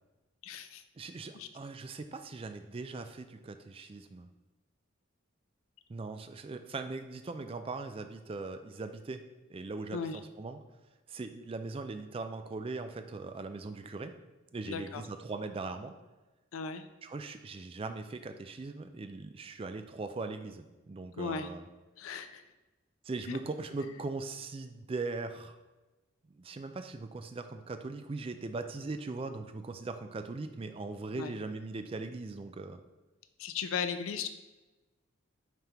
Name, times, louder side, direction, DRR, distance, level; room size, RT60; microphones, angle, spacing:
voice 1, 0.4-0.8 1.4-1.5 9.9-10.2 14.7-15.0 16.5-16.8 21.2-21.5 22.0-22.4 23.3-23.4 31.1-31.3 33.4-34.3, left 6 dB, 80° left, 9 dB, 0.4 m, -36 dB
voice 2, 1.0-4.3 5.9-9.2 9.5-10.6 11.1-14.1 14.5-15.9 17.0-21.7 23.0-25.6 26.3-32.8, right 3 dB, 25° right, 8 dB, 0.3 m, -40 dB
9.1 x 3.5 x 2.9 m, 1.1 s
head